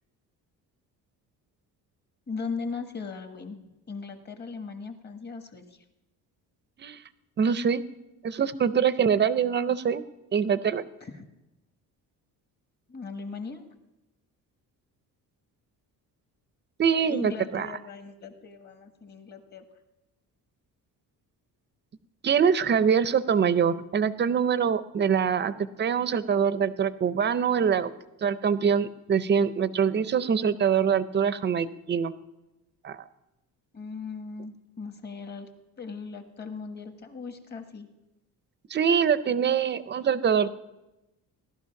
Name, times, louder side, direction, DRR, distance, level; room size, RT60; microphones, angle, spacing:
voice 1, 2.3-5.8 11.0-11.3 12.9-13.6 17.1-19.7 33.7-35.5 35.8-37.9, left 4 dB, 30° left, 7 dB, 1.4 m, -38 dB
voice 2, 7.4-7.8 8.2-10.0 10.3-10.8 16.8-17.7 22.2-25.5 25.8-27.9 28.2-32.1 32.8-33.0 38.7-40.5, right 7 dB, 30° right, 14 dB, 0.6 m, -24 dB
17.5 x 12.0 x 5.8 m, 0.98 s
cardioid pair, 175°, 36 cm